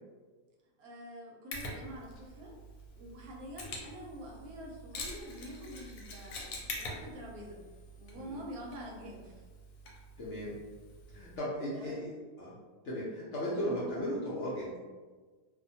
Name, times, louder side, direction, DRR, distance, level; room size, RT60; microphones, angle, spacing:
voice 1, 0.8-2.5 2.9-6.4 6.7-7.6 8.0-9.3 11.7-12.1 13.4-13.7, equal, 75° right, -2 dB, 1.0 m, -46 dB
Mechanisms, 1.5-11.4, left 1 dB, 80° left, 1.1 m, -46 dB
voice 2, 10.2-10.5 11.1-12.1 12.4-12.5 12.8-14.8, equal, 65° left, -7 dB, 0.8 m, -36 dB
2.6 x 2.1 x 2.6 m, 1.4 s
omnidirectional pair, 1.7 m